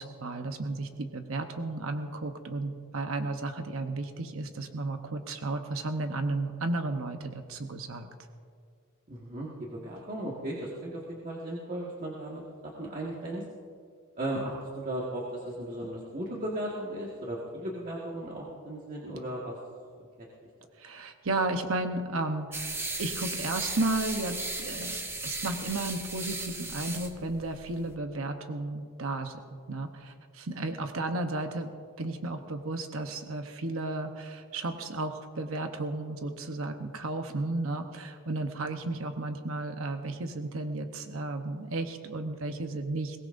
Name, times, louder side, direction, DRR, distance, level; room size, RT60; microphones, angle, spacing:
voice 1, 0.0-8.1 20.8-25.0 25.2-43.2, right 2 dB, 65° right, 6 dB, 0.9 m, -33 dB
voice 2, 9.1-13.4 14.2-19.6, right 1 dB, 40° right, -4 dB, 1.7 m, -36 dB
sound 1, 22.5-27.9, right 2 dB, 10° right, 0.9 m, -36 dB
22.0 x 18.5 x 2.6 m, 2.2 s
head